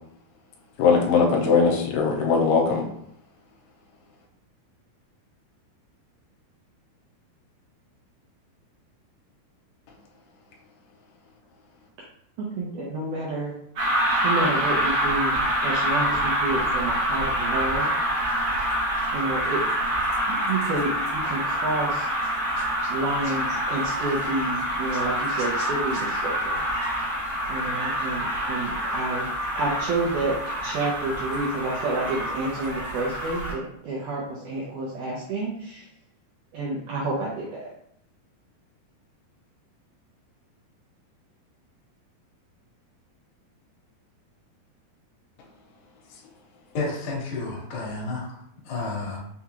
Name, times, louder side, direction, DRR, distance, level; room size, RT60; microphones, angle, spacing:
voice 1, 0.8-2.8, left 5 dB, 90° left, 0 dB, 2.6 m, -20 dB
voice 2, 12.6-13.5 14.2-17.9 19.1-19.6 20.3-22.1 22.9-26.8 27.5-29.3 29.6-30.4 30.6-35.9 36.5-37.7, right 2 dB, 85° right, -5 dB, 1.7 m, -29 dB
sound 1, 13.8-33.5, right 1 dB, 65° right, 1.6 m, -26 dB
voice 3, 46.7-49.2, left 3 dB, 60° left, -5 dB, 2.0 m, -31 dB
6.1 x 2.9 x 2.3 m, 0.70 s
omnidirectional pair, 4.5 m